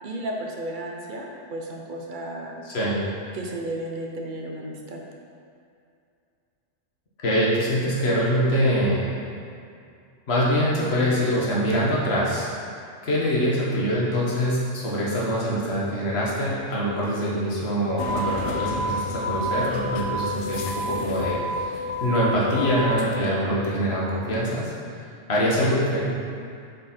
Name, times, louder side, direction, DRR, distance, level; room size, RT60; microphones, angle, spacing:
voice 1, 0.0-2.6 3.3-5.0, right 1 dB, 50° right, 0 dB, 0.8 m, -33 dB
voice 2, 2.6-3.0 7.2-9.1 10.3-12.5 13.0-24.7 25.3-26.0, equal, 60° left, -6 dB, 1.6 m, -24 dB
sound 1, 18.0-23.2, equal, 80° left, 1.0 m, -29 dB
7.8 x 4.4 x 4.4 m, 2.4 s
omnidirectional pair, 1.2 m